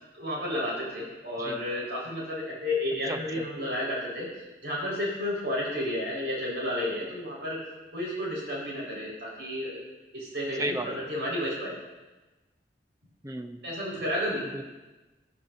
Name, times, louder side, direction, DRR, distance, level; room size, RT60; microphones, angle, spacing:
voice 1, 0.1-4.3 4.6-7.6 7.9-9.8 10.1-11.8 13.6-14.4, left 1 dB, 75° right, -5 dB, 4.8 m, -31 dB
voice 2, 3.1-3.5 10.6-10.9 13.2-13.6 14.5-14.7, right 1 dB, 20° right, 6 dB, 0.7 m, -34 dB
16.0 x 15.0 x 2.7 m, 1.1 s
head